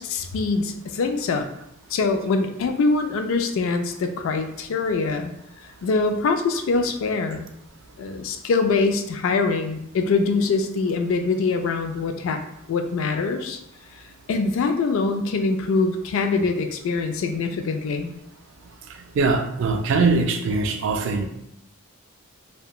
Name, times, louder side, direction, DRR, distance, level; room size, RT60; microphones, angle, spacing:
voice 1, 0.0-1.5 1.9-5.3 5.8-7.5 8.0-12.4 12.7-13.6 14.3-18.1, left 4 dB, 70° left, 6 dB, 0.3 m, -23 dB
voice 2, 19.2-21.3, right 3 dB, 60° right, 5 dB, 0.3 m, -21 dB
2.8 x 2.2 x 2.3 m, 0.78 s
head